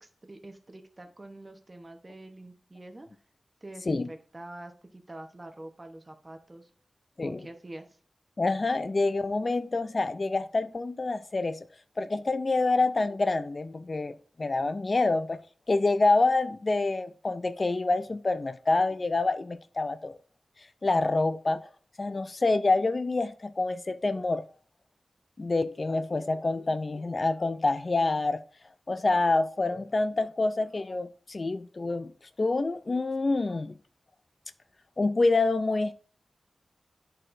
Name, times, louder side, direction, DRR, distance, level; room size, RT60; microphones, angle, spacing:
voice 1, 0.0-3.1 3.6-6.7 7.2-8.0, right 1 dB, 30° right, 0.9 m, -46 dB
voice 2, 8.4-11.6 12.0-15.4 15.7-20.1 20.8-21.6 22.0-24.4 25.4-28.4 28.9-32.1 32.4-33.7 35.0-35.9, left 3 dB, 40° left, 0.4 m, -27 dB
11.0 x 4.3 x 2.6 m
wide cardioid pair, 100°, 0 cm